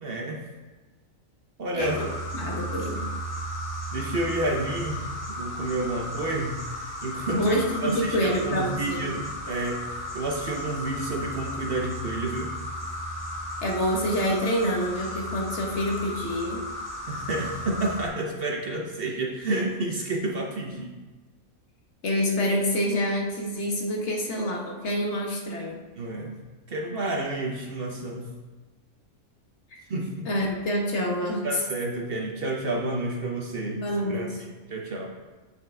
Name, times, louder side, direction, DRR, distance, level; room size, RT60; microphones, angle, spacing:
voice 1, 0.0-0.4 1.6-2.0 3.9-12.5 17.1-20.9 26.0-26.4 26.7-28.2 29.9-30.3 31.4-33.8 34.1-35.1, right 2 dB, 50° right, 1 dB, 1.0 m, -30 dB
sound 1, 1.8-18.1, equal, 15° left, 1.6 m, -35 dB
voice 2, 2.3-3.1 7.3-9.1 13.6-16.6 22.0-25.8 29.7-29.8 30.2-31.6 33.8-34.5, equal, 55° left, 0 dB, 1.4 m, -27 dB
8.7 x 6.4 x 3.4 m, 1.2 s
omnidirectional pair, 1.4 m